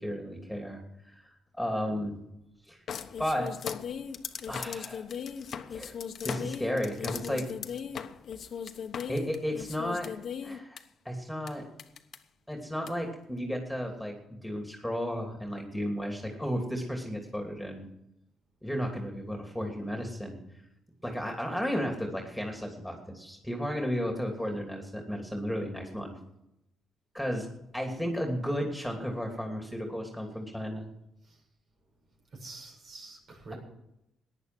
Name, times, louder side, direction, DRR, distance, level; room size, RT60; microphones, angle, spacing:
voice 1, 0.0-2.2 2.7-2.8 3.2-3.5 4.5-5.1 5.7-5.9 6.2-7.5 9.1-10.1 10.4-11.7 12.5-17.9 18.6-20.4 21.0-26.2 27.1-30.9, equal, ahead, 2 dB, 2.9 m, -34 dB
sound 1, 2.9-10.8 11.5-11.6 11.8-12.2 12.9-13.0, left 7 dB, 60° left, 1.1 m, -37 dB
voice 2, 32.4-33.6, right 3 dB, 60° right, 1 dB, 6.6 m, -46 dB
15.0 x 10.5 x 6.1 m, 0.82 s
cardioid pair, 90°, 0 cm